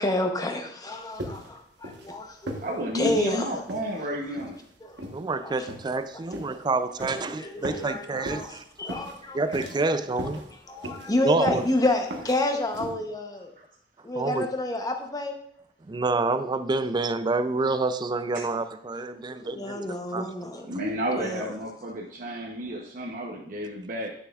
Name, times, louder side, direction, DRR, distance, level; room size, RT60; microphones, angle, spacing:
voice 1, 0.0-2.6 2.9-3.5 4.8-5.0 5.4-5.7 7.1-9.7 10.2-10.3 10.7-13.5 14.0-15.4 19.4-20.7 21.2-21.4, left 1 dB, 20° left, 4 dB, 0.8 m, -29 dB
sound 1, 1.2-1.6 1.8-2.1 2.5-2.7 3.0-3.2 3.7-3.9 4.4-4.6 5.0-5.2 5.7-6.0 6.3-6.5 7.0-7.2 7.6-7.9 8.2-8.5 8.9-9.1 9.5-9.9 10.2-10.4 10.8-11.1 11.5-11.7 12.1-12.4 12.7-12.9, right 1 dB, 75° right, 1.1 m, -36 dB
voice 2, 2.6-4.6 13.6-13.7 20.7-24.1, equal, 50° right, -2 dB, 0.8 m, -31 dB
voice 3, 5.1-8.6 9.3-10.5 11.2-11.6 14.2-14.5 15.9-20.8, right 3 dB, 25° right, 11 dB, 0.4 m, -28 dB
9.1 x 6.7 x 2.4 m, 0.65 s
head